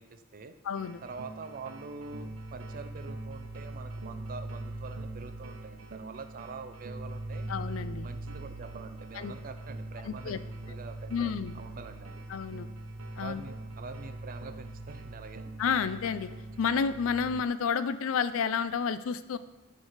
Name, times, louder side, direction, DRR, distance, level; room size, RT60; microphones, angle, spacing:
voice 1, 0.0-0.5 1.0-7.5 8.0-12.2 13.2-15.5, right 4 dB, 40° right, 9 dB, 0.4 m, -45 dB
voice 2, 0.6-1.0 7.5-8.1 9.1-9.3 10.0-10.4 11.1-11.5 12.3-12.7 13.2-13.4 15.6-16.3 16.6-19.4, left 6 dB, 65° left, 14 dB, 0.4 m, -30 dB
sound 1, 0.7-17.4, right 2 dB, 65° right, 0.8 m, -42 dB
9.5 x 3.2 x 6.5 m, 1.1 s
head